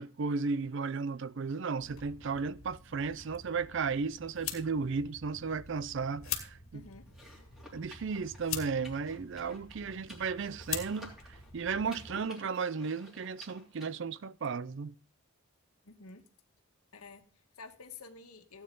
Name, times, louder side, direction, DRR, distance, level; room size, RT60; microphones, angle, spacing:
voice 1, 0.0-6.8 7.7-14.9, right 5 dB, 55° right, 0.4 m, -35 dB
sound 1, 1.8-12.2, left 8 dB, 70° left, 2.1 m, -44 dB
voice 2, 6.7-7.1 15.8-16.2 16.9-18.6, left 4 dB, 90° left, 1.5 m, -50 dB
sound 2, 7.1-13.9, left 1 dB, ahead, 3.2 m, -54 dB
16.0 x 8.8 x 3.9 m
head